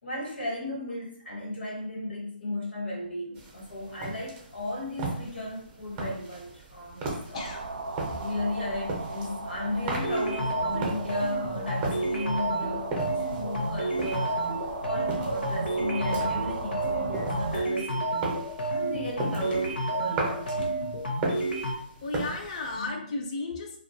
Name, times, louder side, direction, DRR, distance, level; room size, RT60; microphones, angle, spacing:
voice 1, 0.0-7.4 8.2-14.5 14.8-18.2 18.7-20.7 22.8-23.1, left 1 dB, 85° left, -3 dB, 1.2 m, -35 dB
sound 1, 3.4-22.9, right 3 dB, 20° right, 0.6 m, -38 dB
voice 2, 7.1-7.7 8.0-8.1 22.0-23.8, left 2 dB, 35° left, 3 dB, 0.5 m, -34 dB
sound 2, 7.3-17.6, right 3 dB, 85° right, 0.4 m, -37 dB
sound 3, 9.9-21.7, right 2 dB, 65° left, 0.8 m, -30 dB
2.4 x 2.3 x 2.7 m, 0.62 s
hypercardioid pair, 155°, 6 cm